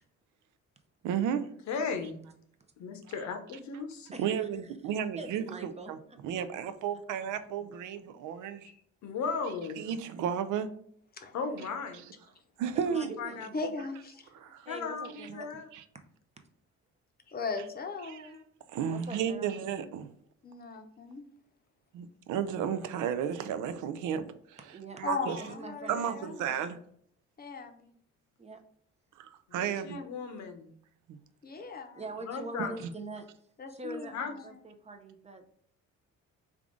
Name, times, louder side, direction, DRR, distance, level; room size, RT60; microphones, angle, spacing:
voice 1, 1.0-1.5 4.2-6.0 6.2-8.7 9.8-10.7 12.6-13.1 14.3-14.7 15.2-15.3 15.7-15.8 18.1-18.3 18.7-20.1 21.9-24.6 25.0-25.4 25.9-26.8 29.2-30.0 31.1-31.2 32.8-32.9, right 8 dB, 80° right, 11 dB, 0.5 m, -33 dB
voice 2, 1.7-2.2 2.8-4.1 8.7-8.8 9.0-9.8 11.3-12.1 12.9-13.5 14.7-15.7 29.5-30.7 32.2-32.8 34.1-34.3, left 5 dB, 65° left, 6 dB, 0.7 m, -36 dB
voice 3, 4.1-4.8 5.2-6.7 12.7-13.6 14.4-15.6 18.9-19.5 24.7-25.0 25.4-26.7 28.4-28.6 29.7-29.9 31.9-33.3 33.7-35.5, right 2 dB, 20° right, 5 dB, 0.6 m, -44 dB
voice 4, 13.5-14.3 17.3-18.4 20.4-21.2 25.0-26.4 27.4-27.9 29.9-30.0 31.4-32.0 33.6-34.5, left 4 dB, 30° left, 5 dB, 0.7 m, -38 dB
3.5 x 2.4 x 3.7 m, 0.65 s
cardioid pair, 90°, 30 cm